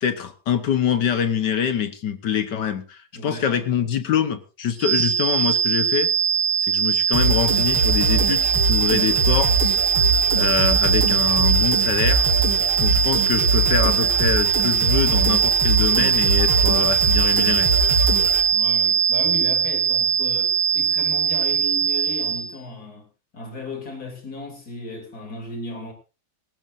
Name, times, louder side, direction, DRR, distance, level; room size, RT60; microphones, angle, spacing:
voice 1, 0.0-6.1 6.6-9.8 10.4-12.3 12.8-17.7, left 8 dB, 60° left, 1.5 m, -25 dB
voice 2, 3.1-3.6 18.5-23.1 23.3-25.9, left 2 dB, 45° left, 3.6 m, -35 dB
sound 1, 4.8-22.5, right 7 dB, 45° right, 1.4 m, -21 dB
sound 2, 7.1-18.4, right 1 dB, 75° right, 4.2 m, -23 dB
18.0 x 18.0 x 2.6 m
omnidirectional pair, 2.3 m